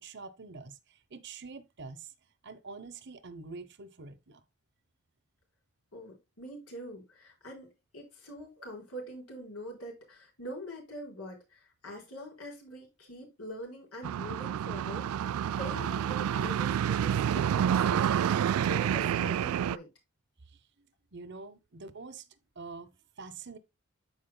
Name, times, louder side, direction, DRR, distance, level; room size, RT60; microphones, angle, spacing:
voice 1, 0.0-2.1 2.4-4.4 20.5-22.3 22.6-23.6, right 4 dB, 55° right, 0.9 m, -46 dB
voice 2, 5.9-19.9, equal, 85° left, 4.3 m, -44 dB
sound 1, 14.0-19.8, right 9 dB, 75° right, 0.3 m, -28 dB
13.5 x 4.9 x 2.2 m
head